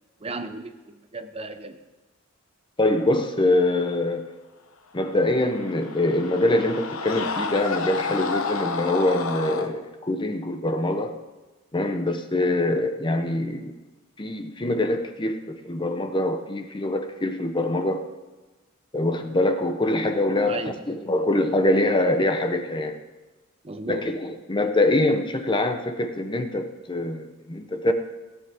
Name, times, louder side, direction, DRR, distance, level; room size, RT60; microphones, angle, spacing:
voice 1, 0.2-1.8 20.5-20.8 23.6-24.1, right 3 dB, 30° right, 8 dB, 0.7 m, -34 dB
voice 2, 2.8-4.3 4.9-11.1 11.7-13.7 14.2-18.0 18.9-22.9 23.9-27.9, left 1 dB, 25° left, 7 dB, 0.9 m, -24 dB
Screaming, 5.2-9.7, left 4 dB, 85° left, 0.9 m, -30 dB
17.0 x 9.3 x 3.7 m, 1.2 s
head